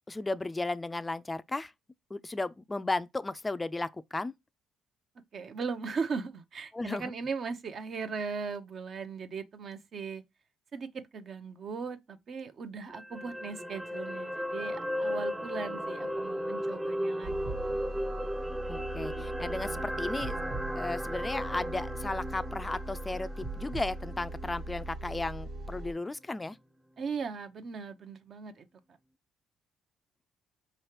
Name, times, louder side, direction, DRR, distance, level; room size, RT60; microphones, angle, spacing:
voice 1, 0.1-1.7 2.1-4.3 6.7-7.1 18.7-20.4 20.8-26.6, left 2 dB, 20° left, 0.3 m, -35 dB
voice 2, 5.3-10.2 10.7-17.5 27.0-28.7, right 5 dB, 55° right, 0.7 m, -38 dB
sound 1, 12.9-25.2 25.6-25.7, equal, 10° right, 0.7 m, -36 dB
sound 2, 17.2-25.9, right 2 dB, 80° right, 1.5 m, -40 dB
4.8 x 3.1 x 2.9 m
supercardioid pair, 70°, 0 cm